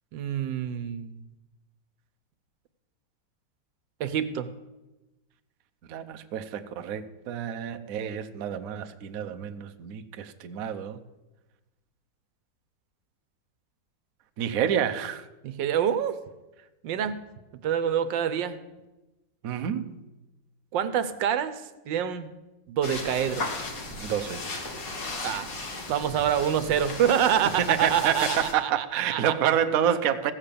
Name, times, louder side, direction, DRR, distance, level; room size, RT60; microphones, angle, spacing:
voice 1, 0.1-1.2 4.0-4.5 15.4-16.2 16.8-17.2 17.6-18.6 20.7-22.3 22.7-23.5 25.2-25.5 25.9-29.3, right 9 dB, 85° right, 1.5 m, -26 dB
voice 2, 5.9-11.0 14.4-15.2 19.4-19.9 24.0-24.4 27.7-30.3, right 9 dB, 60° right, 1.0 m, -28 dB
sound 1, 22.8-28.5, left 2 dB, 50° left, 2.0 m, -36 dB
15.5 x 7.4 x 6.8 m
omnidirectional pair, 1.9 m